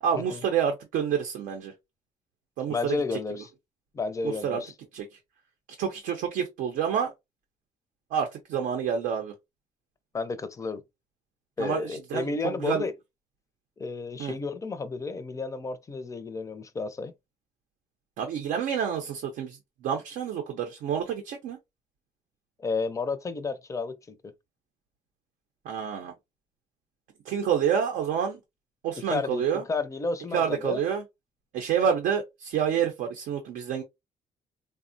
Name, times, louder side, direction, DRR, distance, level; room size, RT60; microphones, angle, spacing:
voice 1, 0.0-1.7 2.6-3.0 4.2-4.6 4.9-5.0 5.8-7.1 8.1-9.3 11.6-12.9 14.2-14.3 18.2-21.6 25.7-26.1 27.3-28.4 28.8-29.6 30.3-31.0 31.5-33.8, right 8 dB, 85° right, 0.6 m, -28 dB
voice 2, 2.7-3.5 3.9-4.7 10.1-10.8 11.6-12.9 13.8-17.1 22.6-24.3 29.1-30.8, left 3 dB, 25° left, 0.4 m, -32 dB
3.4 x 2.0 x 2.5 m
cardioid pair, 115°, 13 cm